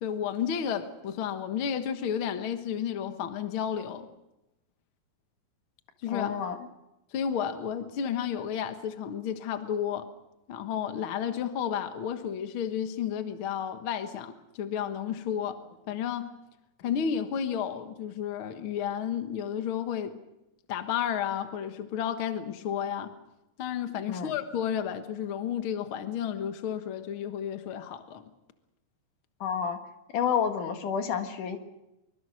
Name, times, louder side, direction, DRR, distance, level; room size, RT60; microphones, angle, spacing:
voice 1, 0.0-4.1 6.0-6.3 7.1-10.1 10.5-15.6 15.9-16.3 16.8-20.2 20.7-23.1 23.6-28.2, left 8 dB, 75° left, 8 dB, 1.2 m, -32 dB
voice 2, 6.1-6.6 24.1-24.3 29.4-29.8 30.1-31.6, left 7 dB, 60° left, 6 dB, 2.9 m, -29 dB
24.0 x 23.5 x 6.3 m, 0.92 s
omnidirectional pair, 4.5 m